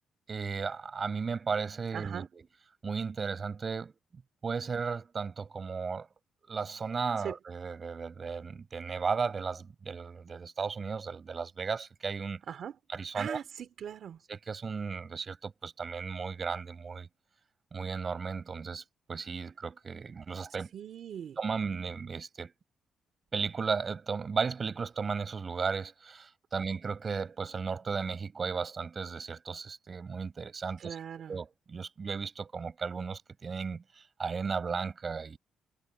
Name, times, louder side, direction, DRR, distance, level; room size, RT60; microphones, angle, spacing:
voice 1, 0.3-2.4 2.8-3.9 4.4-6.1 6.5-12.4 12.9-13.4 14.3-17.1 17.7-20.7 21.4-22.5 23.3-31.0 31.3-35.4, right 5 dB, 35° right, 7.3 m, -35 dB
voice 2, 1.9-2.3 7.2-7.4 12.5-12.8 13.1-14.2 20.7-21.4 30.8-31.4, right 8 dB, 60° right, 3.6 m, -40 dB
cardioid pair, 120°, 0 cm